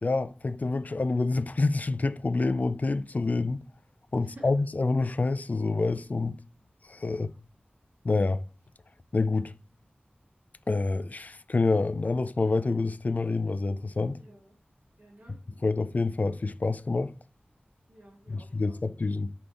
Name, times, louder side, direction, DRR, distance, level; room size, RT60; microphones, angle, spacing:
voice 1, 0.0-3.6 4.1-6.4 6.9-7.3 8.0-8.4 9.1-9.5 10.7-14.2 15.6-17.1 18.3-19.3, left 3 dB, 45° left, 0.3 m, -27 dB
voice 2, 4.2-4.5 7.0-7.4 14.1-14.5 15.0-15.4 17.9-19.0, right 1 dB, 75° right, 1.4 m, -54 dB
3.8 x 3.4 x 3.7 m
wide cardioid pair, 70°, 4 cm